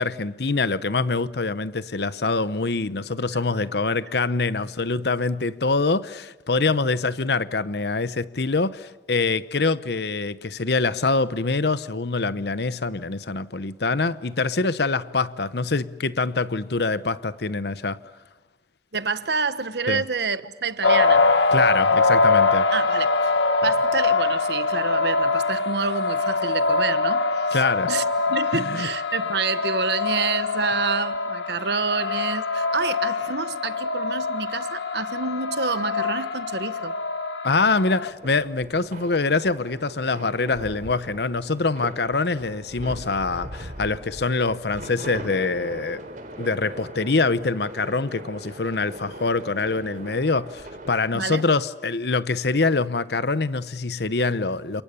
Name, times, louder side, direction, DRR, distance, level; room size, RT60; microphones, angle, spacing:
voice 1, 0.0-18.0 19.9-20.0 21.5-22.7 27.5-27.9 28.5-28.9 37.4-46.0 46.4-54.8, left 3 dB, 65° left, 0.9 m, -24 dB
voice 2, 18.9-21.3 22.7-23.1 23.6-27.6 27.9-37.0 51.1-51.4, right 4 dB, 70° right, 1.3 m, -28 dB
sound 1, 20.8-38.1, left 3 dB, 90° left, 1.6 m, -23 dB
sound 2, 37.7-50.9, right 1 dB, 45° right, 4.0 m, -40 dB
30.0 x 27.5 x 7.0 m
head